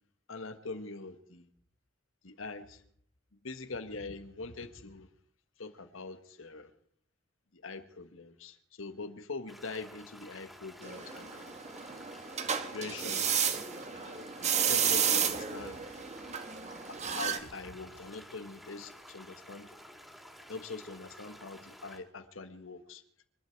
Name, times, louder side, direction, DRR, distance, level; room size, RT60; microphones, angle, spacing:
voice 1, 0.3-1.5 2.2-2.8 3.3-5.1 5.6-6.7 7.5-11.3 12.6-13.3 13.9-15.8 16.9-19.8 20.5-23.0, left 3 dB, 80° left, 10 dB, 1.5 m, -43 dB
sound 1, 9.5-22.0, equal, ahead, 3.1 m, -52 dB
sound 2, 10.8-17.4, right 7 dB, 35° right, 1.4 m, -32 dB
26.0 x 12.0 x 4.6 m, 0.64 s
head